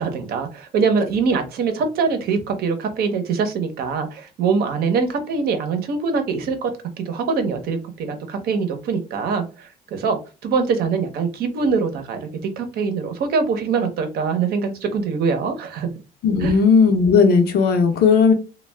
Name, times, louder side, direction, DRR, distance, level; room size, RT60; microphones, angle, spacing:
voice 1, 0.0-6.7 7.0-15.9 16.4-16.6, right 5 dB, 65° right, 0.7 m, -23 dB
voice 2, 16.2-18.3, left 5 dB, 65° left, 0.7 m, -15 dB
2.2 x 2.2 x 3.3 m
cardioid pair, 110°, 17 cm